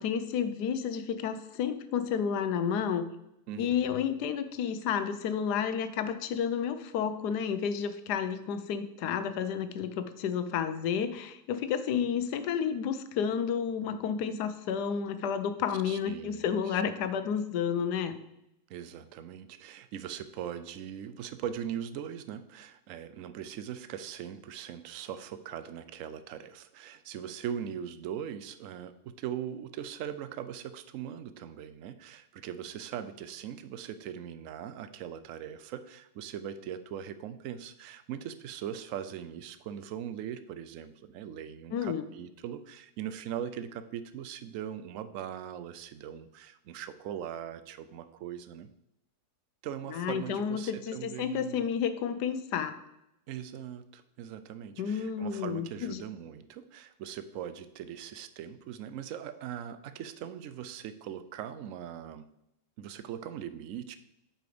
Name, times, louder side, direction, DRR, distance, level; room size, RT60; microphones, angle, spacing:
voice 1, 0.0-3.1 3.6-18.2 41.7-42.1 49.9-52.8 54.8-56.0, left 7 dB, 75° left, 10 dB, 1.3 m, -31 dB
voice 2, 3.5-3.9 15.9-16.8 18.7-48.7 49.6-51.7 53.3-62.3 62.8-64.0, right 9 dB, 65° right, 12 dB, 0.8 m, -40 dB
7.6 x 5.2 x 5.1 m, 0.84 s
omnidirectional pair, 1.8 m